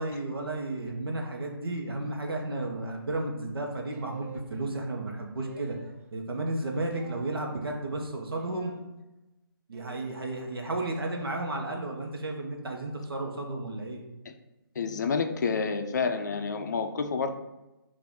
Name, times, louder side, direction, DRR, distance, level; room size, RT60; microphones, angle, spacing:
voice 1, 0.0-5.8 6.1-8.7 9.7-14.0, right 2 dB, 75° right, 1 dB, 0.9 m, -33 dB
sound 1, 3.9-4.5 5.4-6.0 6.9-7.3 8.3-8.8 9.7-10.2 11.0-11.3, right 3 dB, 35° right, 0.4 m, -48 dB
voice 2, 14.8-17.3, left 5 dB, 50° left, 7 dB, 0.4 m, -29 dB
5.8 x 2.5 x 3.5 m, 0.99 s
hypercardioid pair, 160°, 12 cm